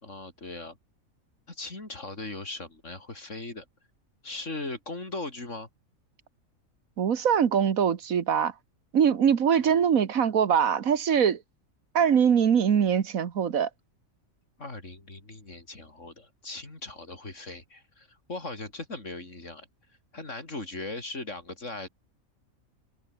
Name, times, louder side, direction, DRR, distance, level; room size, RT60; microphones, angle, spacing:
voice 1, 0.0-0.8 1.5-3.6 4.2-5.7 9.6-9.9 14.6-19.7 20.1-21.9, left 2 dB, 60° left, 4.8 m, -39 dB
voice 2, 7.0-8.5 8.9-11.4 12.0-13.7, right 8 dB, 80° right, 1.7 m, -23 dB
omnidirectional pair, 1.4 m